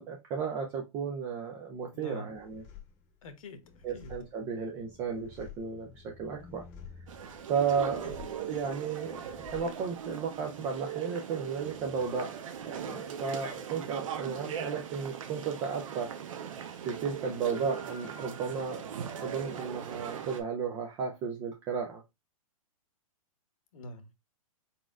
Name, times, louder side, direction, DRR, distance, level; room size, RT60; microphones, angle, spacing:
voice 1, 0.0-2.6 3.8-6.6 7.0-7.1 7.5-12.4 12.6-16.1 16.9-18.9 19.2-22.0, right 6 dB, 15° right, 0.4 m, -34 dB
voice 2, 1.9-2.3 3.2-4.1 7.8-8.1 23.7-24.1, left 1 dB, 65° left, 1.0 m, -46 dB
sound 1, 2.3-17.2 17.5-18.3, left 7 dB, 25° left, 0.9 m, -54 dB
London Underground- Stratford station ambience, 7.1-20.4, right 8 dB, 65° right, 0.8 m, -40 dB
4.5 x 4.1 x 2.4 m
hypercardioid pair, 170°, 19 cm